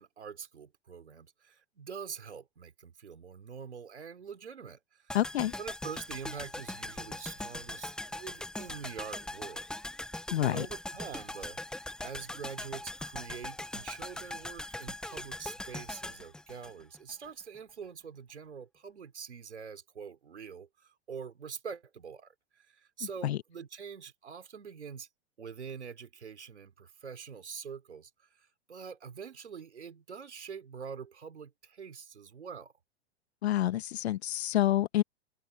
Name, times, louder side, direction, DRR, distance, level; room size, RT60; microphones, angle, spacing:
voice 1, 0.0-5.2 5.6-9.7 10.0-25.1 25.4-32.7, right 6 dB, 90° right, 3.8 m, -45 dB
voice 2, 5.1-5.5 10.3-10.7 23.2-23.4 33.4-35.0, left 13 dB, 70° left, 1.3 m, -28 dB
sound 1, 5.1-17.3 17.5-17.6, left 1 dB, ahead, 0.6 m, -41 dB
hypercardioid pair, 115°, 33 cm